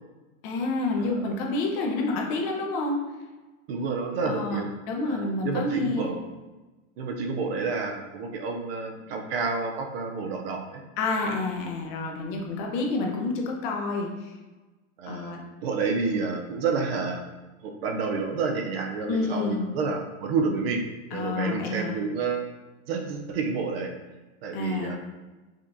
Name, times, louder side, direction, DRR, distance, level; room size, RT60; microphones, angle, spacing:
voice 1, 0.4-3.0 4.2-4.6 4.9-6.1 9.0-9.2 11.0-14.3 15.1-15.4 19.1-19.6 21.1-21.9 24.5-24.9, left 3 dB, 40° left, 0 dB, 0.8 m, -29 dB
voice 2, 3.7-4.7 5.0-6.2 7.0-10.8 15.0-15.3 15.6-17.3 17.6-20.8 21.1-22.4 22.9-23.9 24.4-25.0, right 4 dB, 45° right, 3 dB, 0.5 m, -29 dB
5.0 x 2.4 x 2.6 m, 1.2 s
supercardioid pair, 145°, 41 cm